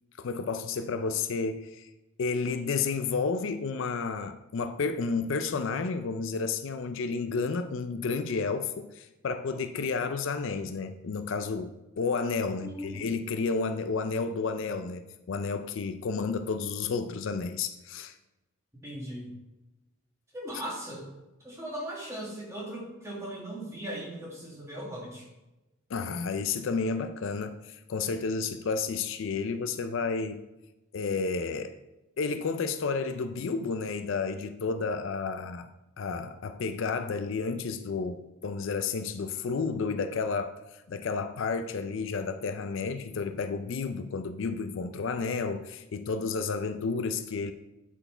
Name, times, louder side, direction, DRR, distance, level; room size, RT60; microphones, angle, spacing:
voice 1, 0.2-1.9 2.2-18.2 25.9-30.4 30.9-31.8 32.2-35.7 36.0-40.6 40.9-47.5, left 4 dB, 60° left, 0.4 m, -31 dB
voice 2, 12.6-13.1 18.8-19.3 20.3-21.1 21.4-25.3, right 1 dB, 15° right, 1.8 m, -38 dB
8.8 x 4.6 x 4.4 m
head